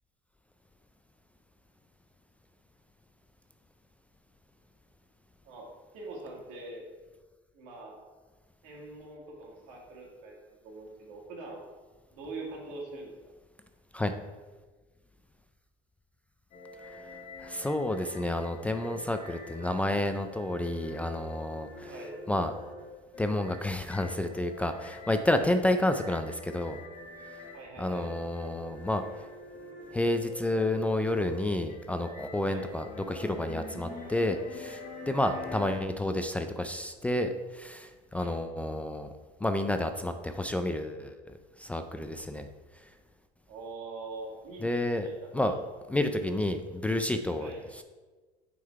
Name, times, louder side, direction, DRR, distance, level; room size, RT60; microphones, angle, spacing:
voice 1, 5.9-6.8 7.5-8.0 8.6-11.6 12.1-13.3 21.9-22.1 25.7-25.9 27.5-28.1 32.5-32.7 35.1-35.6 38.1-38.3 43.5-45.5 45.9-46.0 47.4-47.7, right 3 dB, 85° right, -2 dB, 2.1 m, -43 dB
sound 1, 16.5-35.8, left 2 dB, 50° left, 1.3 m, -45 dB
voice 2, 17.4-21.9 22.3-22.5 23.2-26.8 27.8-29.0 29.9-39.1 39.4-42.5 44.6-45.1 45.3-45.5 45.9-47.5, left 1 dB, 10° left, 7 dB, 0.3 m, -30 dB
6.2 x 3.9 x 4.6 m, 1.3 s
cardioid pair, 125°, 17 cm